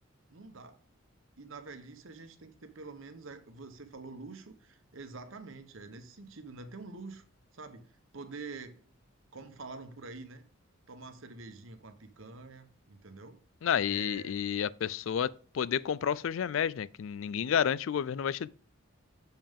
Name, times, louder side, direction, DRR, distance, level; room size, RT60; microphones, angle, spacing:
voice 1, 0.3-0.8 1.4-7.2 7.5-8.9 9.3-10.4 10.9-13.4 13.8-14.4, right 3 dB, 65° right, 1.0 m, -46 dB
voice 2, 13.6-18.5, left 8 dB, 70° left, 0.3 m, -30 dB
6.8 x 5.4 x 3.6 m
head